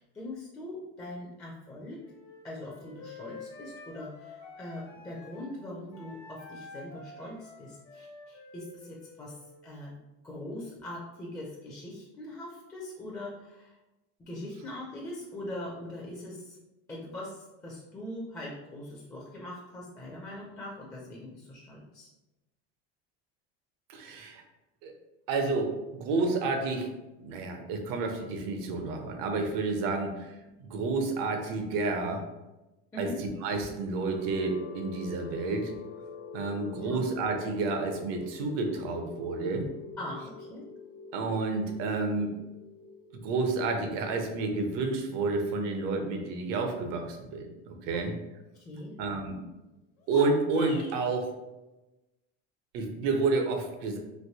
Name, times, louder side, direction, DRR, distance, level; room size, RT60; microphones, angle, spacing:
voice 1, 0.0-2.0 2.4-9.3 9.6-9.9 10.2-13.8 14.2-16.6 16.9-22.1 32.9-33.2 36.8-37.0 40.0-40.6 47.9-48.0 48.7-48.9, left 1 dB, 10° left, -4 dB, 0.4 m, -41 dB
Wind instrument woodwind instrument, 2.0-5.6 5.9-9.7, left 3 dB, 70° left, 1.2 m, -49 dB
voice 2, 23.9-24.4 24.8-24.9 25.3-26.9 27.2-30.3 30.6-32.2 33.0-35.7 36.3-39.7 41.1-42.3 43.1-48.1 49.0-49.4 50.1-51.3 52.7-54.0, right 3 dB, 70° right, 4 dB, 0.7 m, -30 dB
sound 1, 33.9-47.8, left 5 dB, 50° left, 0.7 m, -46 dB
sound 2, 50.0-51.2, left 5 dB, 90° left, 0.7 m, -44 dB
3.3 x 2.6 x 2.8 m, 1.0 s
cardioid pair, 150°, 31 cm